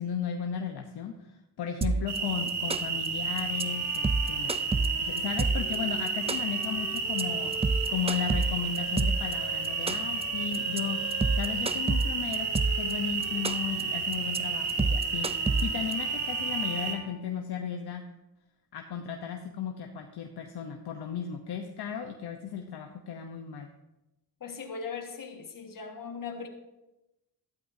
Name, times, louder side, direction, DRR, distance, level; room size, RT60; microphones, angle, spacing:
voice 1, 0.0-4.5 5.0-7.5 7.9-11.0 11.3-12.5 12.7-15.3 15.6-18.0 18.7-23.7, left 8 dB, 70° left, 4 dB, 0.9 m, -35 dB
sound 1, 1.8-2.2 2.5-3.1 3.4-3.6 3.9-5.8 6.1-6.6 7.0-7.2 7.5-9.3 9.6-10.2 10.5-10.8 11.1-12.9 13.2-13.8 14.1-14.4 14.7-15.9, right 3 dB, 15° right, 0.4 m, -28 dB
sound 2, 2.1-17.0, right 5 dB, 80° right, 1.7 m, -31 dB
Bowed string instrument, 3.5-17.7, right 4 dB, 45° right, 2.3 m, -45 dB
voice 2, 24.4-26.5, left 5 dB, 50° left, 3 dB, 1.7 m, -39 dB
12.5 x 12.0 x 2.7 m, 0.96 s
cardioid pair, 85°, 41 cm